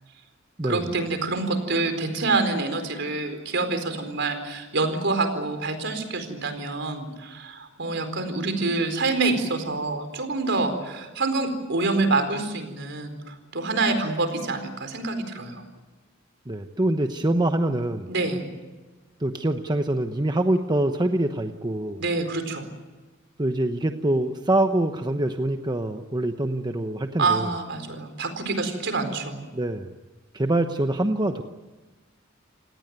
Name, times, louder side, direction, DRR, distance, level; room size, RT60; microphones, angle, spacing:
voice 1, 0.6-15.6 18.1-18.5 22.0-22.7 27.2-29.5, right 3 dB, 65° right, 8 dB, 4.4 m, -26 dB
voice 2, 16.5-18.1 19.2-22.0 23.4-27.5 29.5-29.9 30.3-31.4, right 1 dB, 20° right, 7 dB, 1.0 m, -25 dB
28.5 x 18.5 x 9.5 m, 1.2 s
head